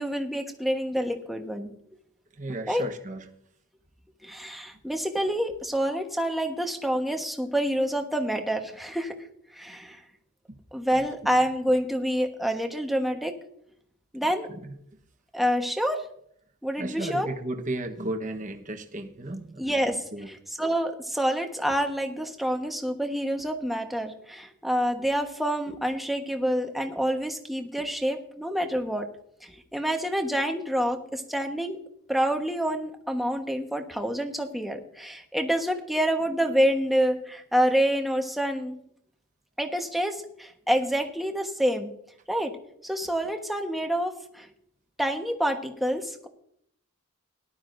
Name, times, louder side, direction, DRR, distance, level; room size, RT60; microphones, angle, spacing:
voice 1, 0.0-1.7 2.7-2.8 4.2-9.1 9.5-10.0 10.7-13.4 14.1-14.5 15.3-16.1 16.6-17.3 19.6-29.1 29.4-31.8 32.1-38.8 39.6-41.9 42.3-42.6 42.8-44.5 45.0-46.3, equal, ahead, 3 dB, 1.2 m, -27 dB
voice 2, 2.4-3.3 10.5-10.6 14.5-14.7 16.8-19.7 20.1-20.3, right 2 dB, 35° right, 4 dB, 1.2 m, -34 dB
18.5 x 12.0 x 2.6 m, 0.68 s
head